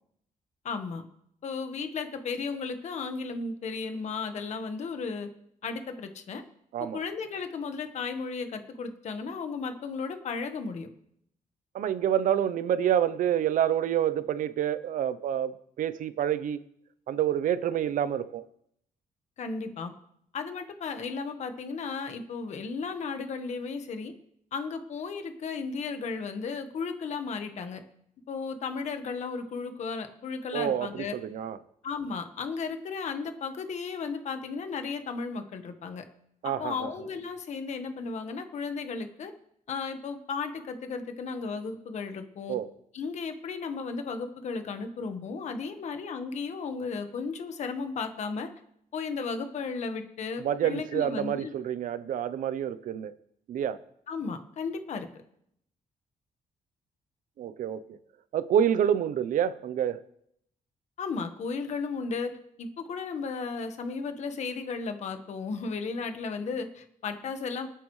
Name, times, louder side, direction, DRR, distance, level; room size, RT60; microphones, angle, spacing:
voice 1, 0.6-1.0 1.4-5.3 5.6-6.4 6.8-10.9 19.4-19.9 20.3-24.1 24.5-27.8 28.3-31.1 31.8-36.0 36.6-39.3 39.7-42.6 42.9-48.5 48.9-51.6 54.1-55.1 61.0-62.3 62.6-67.7, left 4 dB, 55° left, 7 dB, 1.4 m, -34 dB
voice 2, 11.7-16.6 17.1-18.4 30.5-31.6 36.4-36.7 42.5-42.7 50.4-53.1 53.5-53.8 57.4-57.8 58.3-60.0, right 9 dB, 70° right, 14 dB, 0.7 m, -27 dB
26.0 x 9.1 x 3.2 m, 0.72 s
cardioid pair, 170°, 14 cm